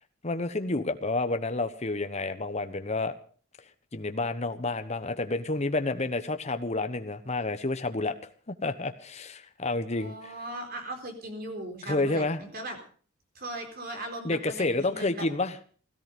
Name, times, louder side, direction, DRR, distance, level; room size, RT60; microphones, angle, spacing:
voice 1, 0.2-3.1 3.9-8.1 8.5-10.3 11.8-12.4 14.2-15.6, left 2 dB, 35° left, 9 dB, 1.1 m, -29 dB
voice 2, 9.9-12.8 13.3-15.2, right 1 dB, 50° right, 4 dB, 4.1 m, -38 dB
17.0 x 13.5 x 5.3 m, 0.43 s
head